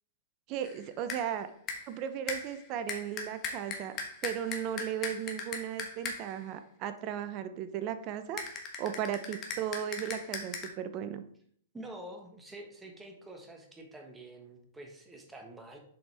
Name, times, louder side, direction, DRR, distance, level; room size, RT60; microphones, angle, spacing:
voice 1, 0.5-1.5 1.9-8.4 8.8-11.2, right 9 dB, 40° right, 10 dB, 0.7 m, -36 dB
sound 1, 0.6-1.3 1.7-2.0 2.3-6.4 8.4-10.7, left 4 dB, 30° left, 1.3 m, -39 dB
voice 2, 11.7-15.8, right 1 dB, 10° right, 2 dB, 1.4 m, -47 dB
7.0 x 5.2 x 3.5 m, 0.63 s
hypercardioid pair, 120°, 0 cm